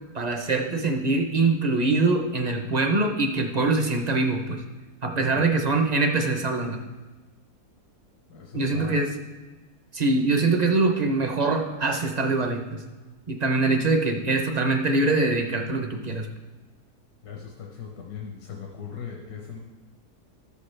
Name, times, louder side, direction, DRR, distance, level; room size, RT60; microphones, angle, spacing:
voice 1, 0.1-4.6 5.0-6.8 8.5-9.1 9.9-12.8 13.3-16.3, right 3 dB, 45° right, 4 dB, 0.5 m, -23 dB
voice 2, 8.3-9.0 17.2-19.6, left 7 dB, 80° left, 0 dB, 1.4 m, -39 dB
13.5 x 6.8 x 3.3 m, 1.2 s
omnidirectional pair, 1.7 m